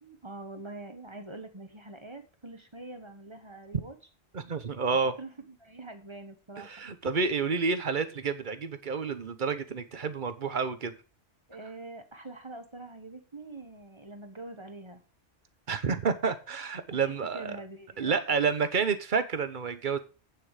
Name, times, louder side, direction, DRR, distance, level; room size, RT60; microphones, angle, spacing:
voice 1, 0.0-3.9 5.2-6.8 11.5-15.0 16.9-17.0 17.3-18.3, right 2 dB, 25° right, 1.3 m, -44 dB
voice 2, 4.3-5.1 6.6-10.9 15.7-17.6 18.0-20.0, right 5 dB, 45° right, 1.1 m, -29 dB
8.7 x 7.6 x 4.9 m
omnidirectional pair, 1.2 m